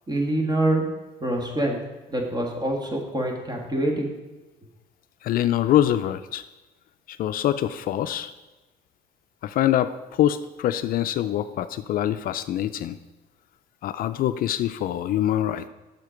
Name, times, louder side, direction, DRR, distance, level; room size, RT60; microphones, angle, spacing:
voice 1, 0.1-0.9 1.2-1.8 2.1-4.1, right 1 dB, 25° right, 2 dB, 1.6 m, -25 dB
voice 2, 5.2-6.4 7.1-8.3 9.4-13.0 13.8-15.7, left 12 dB, 60° left, 11 dB, 0.4 m, -24 dB
6.6 x 6.5 x 5.0 m, 1.1 s
cardioid pair, 110°, 17 cm